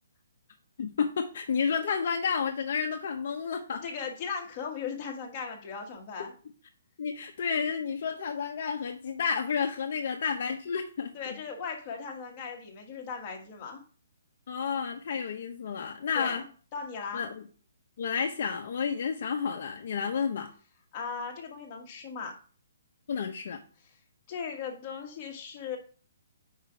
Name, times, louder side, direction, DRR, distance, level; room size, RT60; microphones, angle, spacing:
voice 1, 0.8-3.8 7.0-11.1 14.5-16.4 17.1-17.4 18.0-20.5 23.1-23.6, left 6 dB, 50° left, 3 dB, 0.8 m, -31 dB
voice 2, 3.7-6.3 11.1-13.8 16.1-16.4 16.7-17.2 20.9-22.3 24.3-25.8, left 6 dB, 25° left, 0 dB, 1.3 m, -38 dB
4.9 x 4.8 x 4.9 m, 0.40 s
hypercardioid pair, 170°, 0 cm